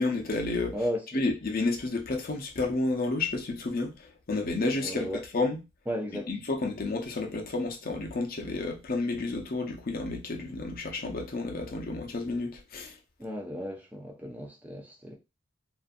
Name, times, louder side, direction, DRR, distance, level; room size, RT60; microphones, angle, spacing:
voice 1, 0.0-0.7 1.1-3.9 4.3-5.6 6.3-12.9, left 3 dB, 45° left, 0.6 m, -30 dB
voice 2, 0.7-1.2 4.8-5.3 5.9-6.3 13.2-15.1, equal, 10° right, 0.4 m, -35 dB
2.5 x 2.4 x 2.5 m
head